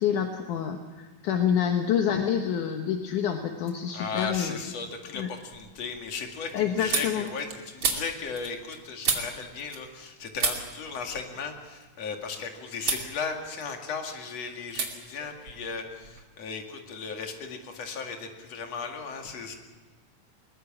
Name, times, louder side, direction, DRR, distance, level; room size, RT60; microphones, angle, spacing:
voice 1, 0.0-4.6 5.1-5.3 6.5-7.3, left 8 dB, 70° left, 4 dB, 2.6 m, -27 dB
voice 2, 3.8-19.5, left 5 dB, 50° left, 3 dB, 3.1 m, -36 dB
sound 1, 5.0-10.1 10.4-12.4 12.8-13.1 13.5-14.2 14.7-14.9 15.2-16.2, right 4 dB, 40° right, 3.1 m, -33 dB
21.5 x 21.0 x 7.4 m, 1.3 s
omnidirectional pair, 4.0 m